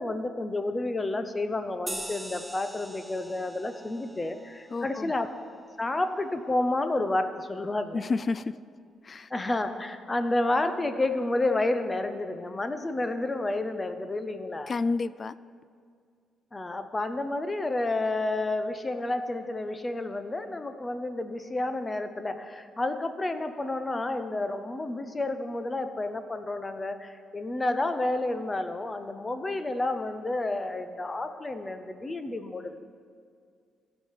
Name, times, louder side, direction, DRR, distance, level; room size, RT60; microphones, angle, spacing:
voice 1, 0.0-5.3 5.8-8.0 9.3-14.7 16.5-32.8, left 2 dB, 20° left, 9 dB, 0.8 m, -30 dB
sound 1, 1.9-6.8, right 1 dB, 10° right, 0.6 m, -44 dB
voice 2, 4.7-5.1 7.9-8.5 9.0-9.3 14.7-15.3, left 4 dB, 40° left, 16 dB, 0.3 m, -30 dB
15.5 x 5.2 x 5.8 m, 2.2 s
cardioid pair, 90°, 0 cm